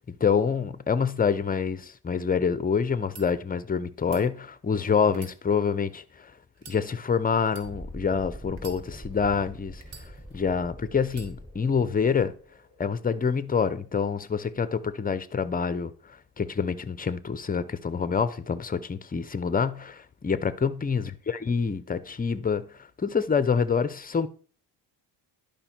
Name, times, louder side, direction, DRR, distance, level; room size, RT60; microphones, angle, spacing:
voice 1, 0.2-6.0 6.7-9.8 10.3-12.3 12.8-15.9 16.4-22.7 23.0-24.3, left 6 dB, 20° left, 0.6 m, -26 dB
sound 1, 3.1-3.3 4.0-4.2 5.1-6.0 6.5-6.8 7.4-7.7 8.5-9.2 9.8-10.5 11.1-11.3, right 5 dB, 75° right, 2.0 m, -48 dB
Thunderstorm, 7.6-15.1, equal, 10° right, 5.0 m, -44 dB
11.0 x 5.2 x 4.4 m
supercardioid pair, 80°, 47 cm